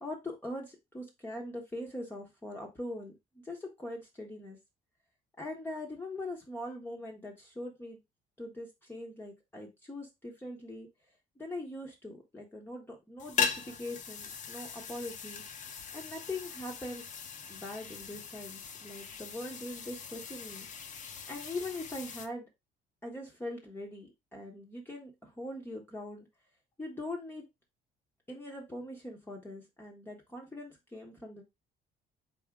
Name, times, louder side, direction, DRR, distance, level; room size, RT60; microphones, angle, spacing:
voice 1, 0.0-4.6 5.4-8.0 8.4-10.9 11.4-15.4 15.9-17.0 17.5-20.7 21.3-22.5 23.0-26.3 26.8-27.4 28.3-31.4, left 1 dB, 10° left, -1 dB, 1.0 m, -42 dB
sound 1, 13.2-22.3, left 6 dB, 50° left, 0.8 m, -39 dB
4.2 x 3.6 x 3.6 m, 0.21 s
cardioid pair, 110°, 17 cm